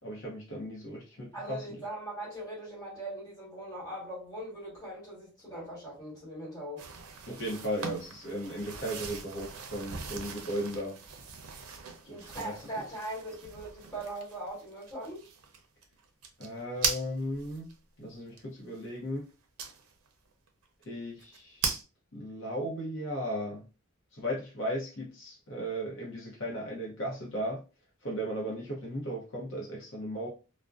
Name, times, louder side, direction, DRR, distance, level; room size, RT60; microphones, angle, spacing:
voice 1, 0.0-1.8 7.3-11.0 12.0-12.6 16.4-17.7 18.0-19.3 20.9-21.7 22.1-23.7 24.1-27.6 28.0-30.3, equal, 60° left, 0.7 m, -36 dB
voice 2, 1.3-6.8 12.0-15.2, right 1 dB, 15° left, 1.2 m, -40 dB
sound 1, 6.8-17.7 18.4-18.5 19.6-20.1 20.5-20.6 20.8-20.9 21.2-21.8, right 5 dB, 85° right, 0.5 m, -39 dB
2.5 x 2.1 x 2.3 m
head